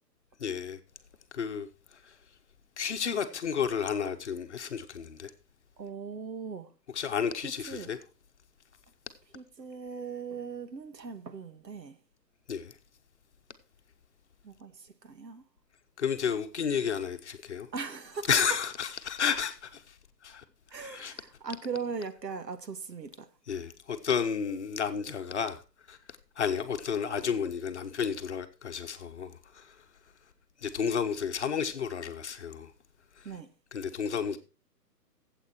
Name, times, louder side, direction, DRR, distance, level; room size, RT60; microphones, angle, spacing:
voice 1, 0.4-0.8 1.3-1.7 2.8-5.3 6.9-8.0 12.5-12.7 16.0-17.7 18.3-19.8 20.2-20.4 20.7-21.1 23.5-25.6 25.9-26.0 26.4-29.7 30.6-32.7 33.7-34.4, left 7 dB, 45° left, 1.1 m, -31 dB
voice 2, 5.8-6.7 7.4-7.9 9.3-12.0 14.4-15.4 17.7-18.3 20.7-23.3 33.2-33.5, right 5 dB, 85° right, 1.7 m, -39 dB
13.0 x 8.1 x 4.4 m
hypercardioid pair, 170°, 49 cm